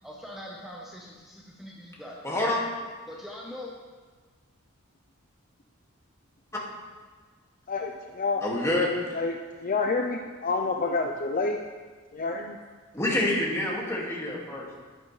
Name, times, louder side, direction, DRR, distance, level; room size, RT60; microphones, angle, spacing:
voice 1, 0.0-2.2 3.1-3.7, left 1 dB, ahead, -3 dB, 0.9 m, -42 dB
voice 2, 2.2-2.6 8.4-8.9 12.9-14.8, left 1 dB, 15° left, -4 dB, 2.0 m, -27 dB
voice 3, 7.7-8.4 9.1-9.3 9.6-11.6 12.1-12.6, left 3 dB, 40° left, 3 dB, 0.5 m, -28 dB
11.0 x 10.5 x 3.2 m, 1.4 s
head